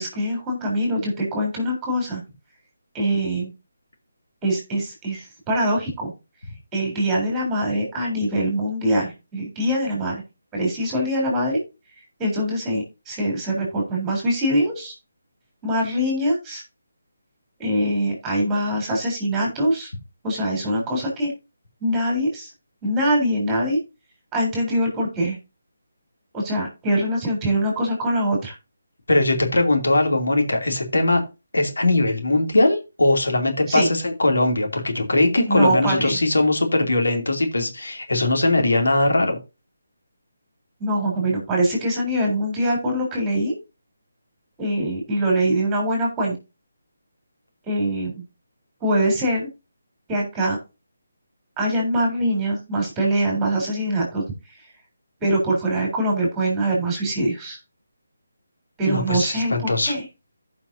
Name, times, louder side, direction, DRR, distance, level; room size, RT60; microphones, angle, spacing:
voice 1, 0.0-2.2 2.9-3.5 4.4-6.1 6.7-10.2 10.5-11.6 12.2-14.9 15.6-16.6 17.6-19.9 20.2-21.3 21.8-22.5 22.8-23.8 24.3-25.4 26.3-28.6 33.7-33.9 35.5-36.2 40.8-43.5 44.6-46.4 47.7-48.2 48.8-49.5 50.1-50.6 51.6-54.2 55.2-57.6 58.8-60.0, right 1 dB, 10° right, -1 dB, 3.8 m, -23 dB
voice 2, 29.1-31.2 31.5-39.4 58.8-59.9, left 2 dB, 90° left, 3 dB, 2.8 m, -20 dB
15.0 x 5.8 x 2.7 m, 0.27 s
figure-of-eight pair, 165°, 0 cm